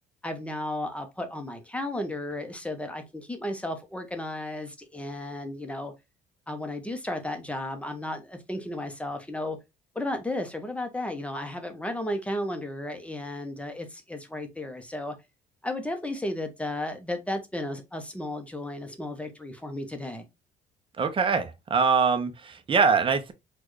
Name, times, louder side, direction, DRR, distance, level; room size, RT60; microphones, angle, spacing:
voice 1, 0.2-5.9 6.5-9.6 9.9-15.1 15.6-20.3, left 1 dB, 5° left, 0.8 m, -34 dB
voice 2, 21.0-23.3, right 5 dB, 30° right, 0.7 m, -23 dB
4.3 x 2.4 x 3.1 m
cardioid pair, 110°, 17 cm